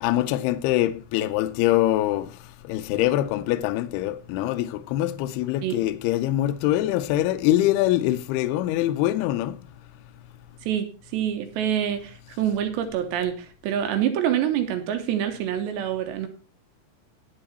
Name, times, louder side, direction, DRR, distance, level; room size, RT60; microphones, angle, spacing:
voice 1, 0.0-2.3 2.7-9.5, left 14 dB, 80° left, 2.4 m, -24 dB
voice 2, 10.7-16.3, right 10 dB, 75° right, 3.2 m, -26 dB
10.5 x 8.8 x 4.2 m
omnidirectional pair, 5.1 m